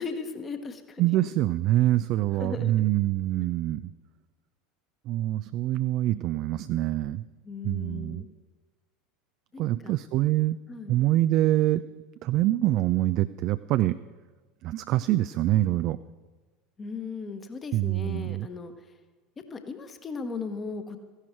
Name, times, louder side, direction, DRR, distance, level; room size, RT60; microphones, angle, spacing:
voice 1, 0.0-1.1 2.4-2.9 7.4-8.3 9.5-9.9 10.7-11.0 16.8-18.7 19.4-21.0, left 4 dB, 25° left, 8 dB, 1.2 m, -37 dB
voice 2, 1.0-3.9 5.1-7.2 7.6-8.2 9.6-10.6 10.9-11.8 12.2-14.0 14.6-16.0 17.7-18.5, right 15 dB, 50° right, 13 dB, 0.3 m, -25 dB
14.5 x 11.0 x 4.5 m, 1.3 s
figure-of-eight pair, 75°, 0 cm